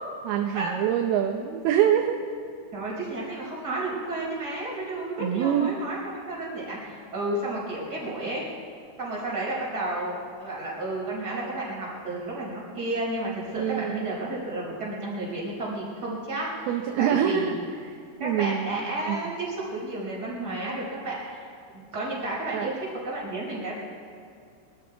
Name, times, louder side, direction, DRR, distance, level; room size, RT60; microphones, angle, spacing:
voice 1, 0.3-2.2 5.2-5.8 13.5-14.1 16.7-17.5 17.8-17.9 18.2-18.7 19.1-19.2 22.5-22.7, right 10 dB, 75° right, 4 dB, 2.5 m, -25 dB
voice 2, 2.7-8.4 9.0-16.7 17.0-17.6 18.2-23.7, right 2 dB, 20° right, -5 dB, 4.9 m, -32 dB
22.5 x 12.5 x 4.6 m, 2.4 s
omnidirectional pair, 5.2 m